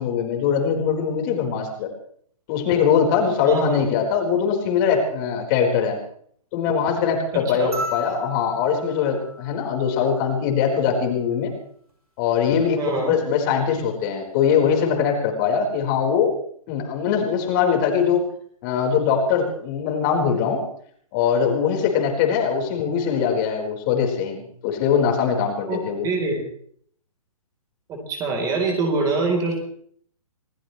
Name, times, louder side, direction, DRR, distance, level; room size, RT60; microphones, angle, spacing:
voice 1, 0.0-1.9 2.5-6.0 6.5-11.5 12.2-16.3 16.7-18.2 18.6-20.6 21.1-26.1, left 7 dB, 35° left, 1 dB, 4.4 m, -22 dB
voice 2, 3.5-3.8 7.3-7.8 12.8-13.2 25.7-26.4 27.9-29.6, right 3 dB, 20° right, 2 dB, 3.8 m, -25 dB
sound 1, 7.7-10.3 11.9-12.0, left 1 dB, 85° right, 6.6 m, -34 dB
27.0 x 17.0 x 3.2 m, 0.62 s
figure-of-eight pair, 135°, 19 cm